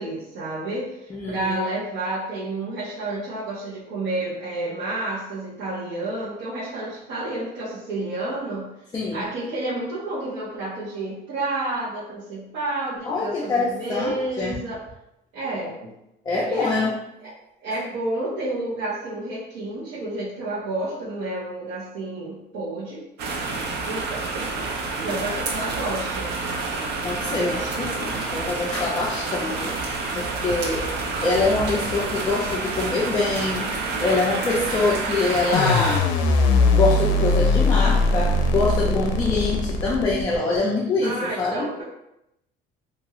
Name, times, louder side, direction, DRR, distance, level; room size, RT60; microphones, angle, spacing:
voice 1, 0.0-8.7 9.1-14.8 15.3-15.9 16.4-16.9 17.2-17.3 17.6-23.6 23.9-24.4 25.0-26.3 41.0-41.8, right 2 dB, 80° right, -10 dB, 1.0 m, -30 dB
voice 2, 1.1-1.5 8.9-9.3 13.1-14.5 16.3-16.9 27.0-30.9 31.2-33.7 34.0-36.0 36.5-41.7, left 3 dB, 20° left, -4 dB, 0.4 m, -24 dB
sound 1, 23.2-36.0, right 3 dB, 60° right, 0.5 m, -28 dB
sound 2, 35.5-40.6, left 3 dB, 75° left, 0.5 m, -20 dB
2.5 x 2.3 x 3.0 m, 0.83 s
cardioid pair, 155°, 19 cm